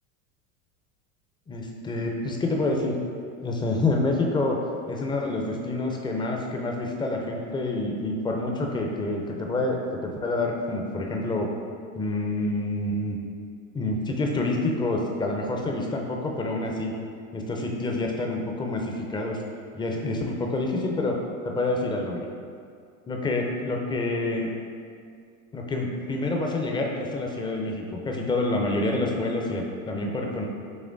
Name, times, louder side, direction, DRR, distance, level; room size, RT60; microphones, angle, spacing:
voice 1, 1.5-3.0 3.4-4.6 4.9-11.5 12.0-13.2 13.7-16.9 17.3-19.4 19.7-21.2 21.4-22.3 23.1-24.5 25.5-30.5, left 2 dB, 10° left, 1 dB, 0.4 m, -27 dB
6.2 x 3.1 x 2.5 m, 2.3 s
hypercardioid pair, 85°, 43 cm